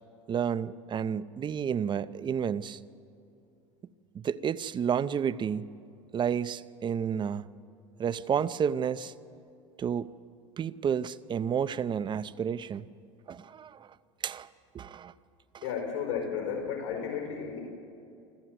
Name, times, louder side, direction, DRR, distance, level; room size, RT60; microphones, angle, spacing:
voice 1, 0.3-2.8 4.1-5.8 6.1-7.5 8.0-9.1 9.8-10.1 10.6-12.9 13.3-13.9 14.2-14.5 14.7-15.1 15.5-15.6, right 8 dB, 30° right, 15 dB, 0.6 m, -31 dB
voice 2, 15.6-17.6, left 7 dB, 80° left, 2 dB, 4.9 m, -33 dB
25.5 x 14.5 x 7.9 m, 2.6 s
hypercardioid pair, 85°, 16 cm